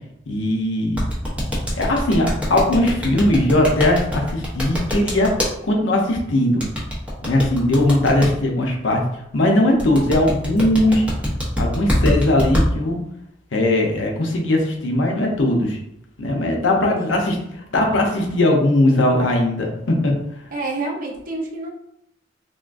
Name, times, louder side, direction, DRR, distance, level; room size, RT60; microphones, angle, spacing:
voice 1, 0.3-1.0 1.8-6.6 7.2-11.1 11.6-13.0 13.5-15.8 16.2-20.1, left 1 dB, 85° left, 1 dB, 0.6 m, -19 dB
sound 1, 1.0-5.5 6.6-8.3 9.8-12.6, equal, 5° right, 0.7 m, -23 dB
voice 2, 16.8-17.2 20.5-21.7, right 2 dB, 50° right, -1 dB, 0.7 m, -28 dB
3.6 x 2.2 x 2.5 m, 0.78 s
head